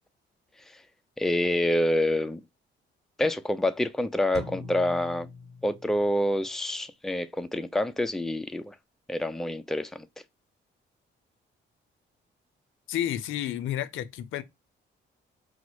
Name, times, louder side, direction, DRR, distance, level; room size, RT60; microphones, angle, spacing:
voice 1, 1.2-2.4 3.2-5.3 5.6-8.7 9.1-10.1, left 1 dB, ahead, 0.5 m, -27 dB
sound 1, 4.3-6.2, left 1 dB, 35° right, 2.4 m, -42 dB
voice 2, 12.9-14.4, left 12 dB, 85° left, 0.6 m, -31 dB
5.0 x 2.1 x 4.6 m
cardioid pair, 90°, 20 cm